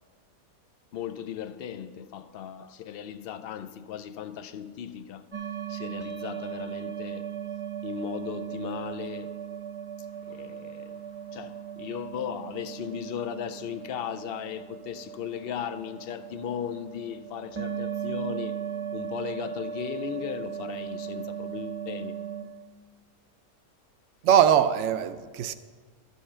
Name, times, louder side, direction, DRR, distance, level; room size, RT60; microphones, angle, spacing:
voice 1, 0.9-5.3 5.7-7.3 7.8-9.4 10.2-11.0 11.3-18.6 18.9-22.2, left 9 dB, 70° left, 0.5 m, -37 dB
sound 1, 5.3-22.4, right 8 dB, 25° right, 0.7 m, -37 dB
voice 2, 24.2-25.5, right 9 dB, 65° right, 0.8 m, -21 dB
13.0 x 5.5 x 6.6 m
omnidirectional pair, 1.5 m